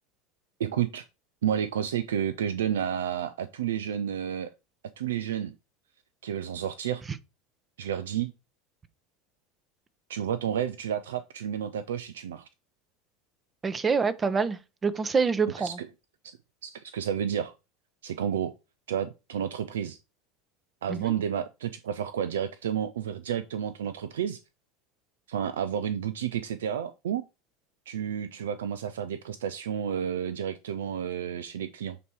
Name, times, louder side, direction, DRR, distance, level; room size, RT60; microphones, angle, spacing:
voice 1, 0.6-1.1 1.4-4.5 5.0-5.5 6.2-7.0 7.8-8.3 10.1-12.5 15.6-15.9 16.2-16.4 16.6-17.5 18.0-18.5 18.9-20.0 20.8-24.4 25.3-27.2 27.9-32.0, right 9 dB, 80° right, 0.4 m, -31 dB
voice 2, 13.6-15.8 20.9-21.1, right 5 dB, 25° right, 0.8 m, -26 dB
8.0 x 3.0 x 4.7 m
hypercardioid pair, 85°, 0 cm